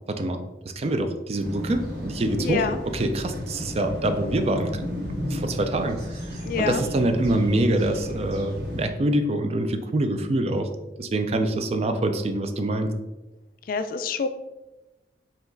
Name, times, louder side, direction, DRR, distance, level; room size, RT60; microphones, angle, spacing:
voice 1, 0.1-0.4 0.8-2.6 2.9-5.0 5.3-6.2 6.6-10.7 11.0-12.9, right 1 dB, 35° right, 7 dB, 0.4 m, -25 dB
sound 1, 1.4-8.9, equal, 70° right, 1.3 m, -33 dB
voice 2, 2.4-2.8 6.4-6.8 13.7-14.3, left 5 dB, 50° left, 10 dB, 0.3 m, -26 dB
4.9 x 2.3 x 3.8 m, 1.0 s
head